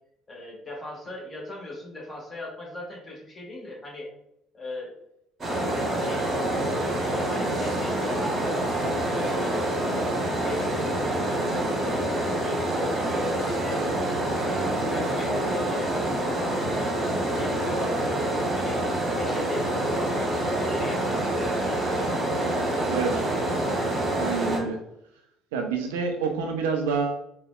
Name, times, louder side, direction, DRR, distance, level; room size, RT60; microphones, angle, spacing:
voice 1, 0.3-4.1 4.5-4.9 5.5-6.5 7.0-10.0 10.3-13.8 14.4-18.2 18.5-18.8 19.1-22.1, left 2 dB, 25° left, -3 dB, 1.2 m, -38 dB
sound 1, 5.4-24.6, right 1 dB, 30° right, 1.0 m, -26 dB
voice 2, 22.9-23.2 24.1-24.8 25.5-27.2, right 5 dB, 70° right, 4 dB, 0.4 m, -27 dB
3.9 x 2.0 x 2.4 m, 0.80 s
figure-of-eight pair, 55°, 0 cm